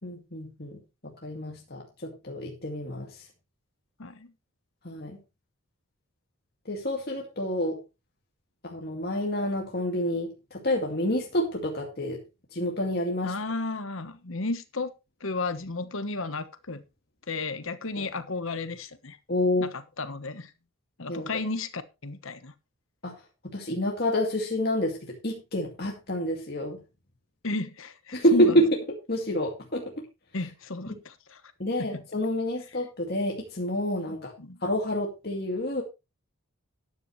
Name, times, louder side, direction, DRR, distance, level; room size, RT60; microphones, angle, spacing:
voice 1, 0.0-3.3 4.8-5.2 6.7-7.8 8.6-12.2 12.5-13.3 18.0-18.1 19.3-19.7 21.1-21.3 23.0-23.1 23.4-26.8 28.1-28.8 29.1-29.9 30.9-31.0 31.6-34.3 34.6-35.8, equal, 45° left, 2.2 m, -28 dB
voice 2, 4.0-4.3 13.2-14.9 15.2-16.9 17.3-19.2 19.6-20.5 21.0-22.5 27.4-28.6 30.3-31.4 31.8-32.0 34.1-34.6, left 3 dB, 70° left, 1.2 m, -33 dB
13.0 x 10.0 x 3.2 m
head